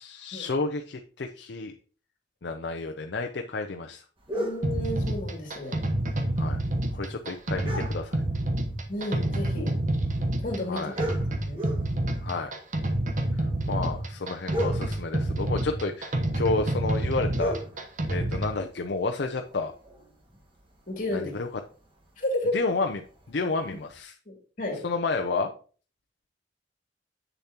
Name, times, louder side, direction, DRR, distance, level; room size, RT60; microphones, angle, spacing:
voice 1, 0.0-1.7 2.4-4.0 6.4-6.6 6.9-8.2 10.7-10.9 12.2-12.6 13.3-17.6 18.1-19.7 21.1-21.6 22.5-23.0 23.3-24.2 24.8-25.5, left 3 dB, 65° left, 4 dB, 0.6 m, -30 dB
sound 1, 4.2-24.0, equal, 30° right, 1.5 m, -41 dB
voice 2, 4.3-5.8 8.9-9.7 10.4-11.6 20.9-21.3 22.2-22.6 24.3-24.8, left 1 dB, 45° left, 1 dB, 2.5 m, -32 dB
sound 2, 4.6-18.6, right 1 dB, 45° right, 1.0 m, -28 dB
8.2 x 6.8 x 2.9 m, 0.40 s
head